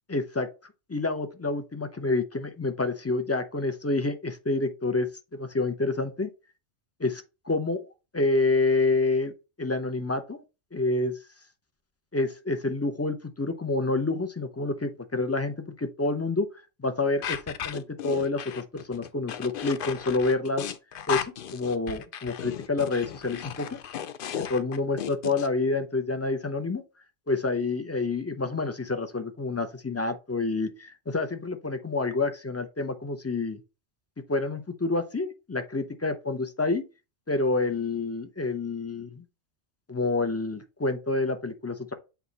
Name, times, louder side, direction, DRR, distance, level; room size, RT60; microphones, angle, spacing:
voice 1, 0.1-0.5 0.9-6.3 7.0-7.8 8.1-9.3 9.6-10.4 10.7-11.1 12.1-16.5 16.8-20.6 21.1-21.3 21.5-23.8 24.5-26.8 27.3-33.6 34.3-36.8 37.3-39.2 39.9-41.9, left 3 dB, 25° left, 0.3 m, -28 dB
sound 1, 17.2-25.5, left 9 dB, 60° left, 0.6 m, -35 dB
8.1 x 2.9 x 4.0 m
omnidirectional pair, 1.2 m